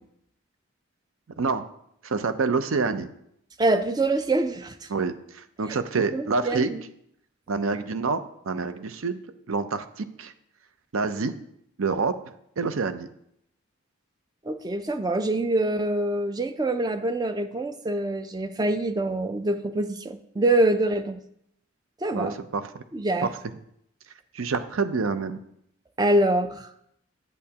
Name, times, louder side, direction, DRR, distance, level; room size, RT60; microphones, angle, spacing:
voice 1, 1.4-1.7 2.0-3.1 4.9-6.7 7.5-8.2 8.5-9.2 9.5-10.3 10.9-11.3 11.8-12.1 12.6-13.1 22.1-22.8 23.2-23.3 24.3-25.4, right 4 dB, 75° right, 11 dB, 0.6 m, -27 dB
voice 2, 3.6-4.9 5.7-5.8 6.1-6.8 14.4-21.2 22.0-22.4 22.9-23.3 26.0-26.7, right 1 dB, 20° right, 9 dB, 0.4 m, -25 dB
8.6 x 8.1 x 2.9 m, 0.74 s
head